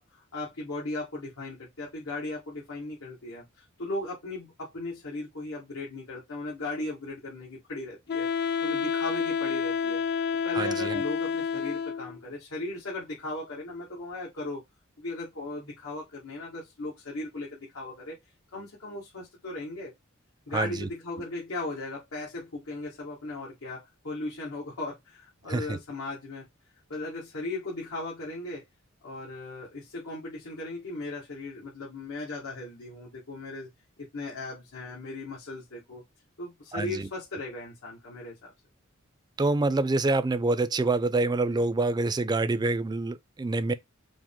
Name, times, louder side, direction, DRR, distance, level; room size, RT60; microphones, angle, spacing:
voice 1, 0.0-8.3 8.6-14.6 15.0-18.1 18.5-19.9 20.5-26.4 26.9-28.6 29.0-33.7 34.0-36.0 36.4-38.5, left 2 dB, 90° left, 1.5 m, -37 dB
Wind instrument woodwind instrument, 8.1-12.2, left 6 dB, 50° left, 0.4 m, -29 dB
voice 2, 10.5-11.0 20.5-20.9 25.5-25.8 36.7-37.1 39.4-43.7, right 2 dB, 20° right, 0.3 m, -26 dB
5.0 x 2.0 x 3.6 m
head